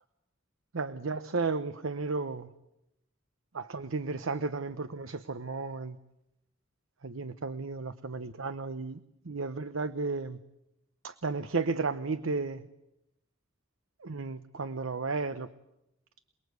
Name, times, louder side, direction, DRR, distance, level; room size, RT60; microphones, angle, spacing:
voice 1, 0.7-2.5 3.5-6.0 7.0-9.0 9.2-10.4 11.0-12.7 14.0-15.5, right 4 dB, 85° right, 12 dB, 0.9 m, -33 dB
28.0 x 20.5 x 8.1 m, 0.85 s
head